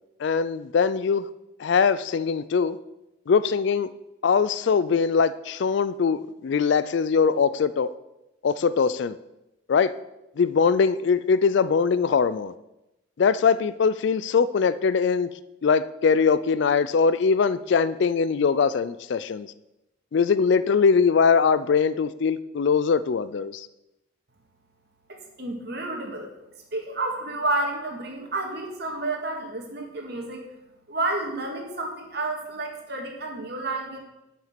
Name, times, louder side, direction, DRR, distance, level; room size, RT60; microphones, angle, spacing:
voice 1, 0.2-1.3 1.6-2.8 3.3-3.9 4.2-7.9 8.4-9.2 9.7-9.9 10.4-12.5 13.2-15.3 15.6-19.5 20.1-23.7, left 5 dB, 60° left, 15 dB, 0.3 m, -22 dB
voice 2, 25.1-26.3 26.7-30.4 30.9-34.0, right 2 dB, 50° right, 1 dB, 2.0 m, -30 dB
12.0 x 6.0 x 5.8 m, 0.93 s
head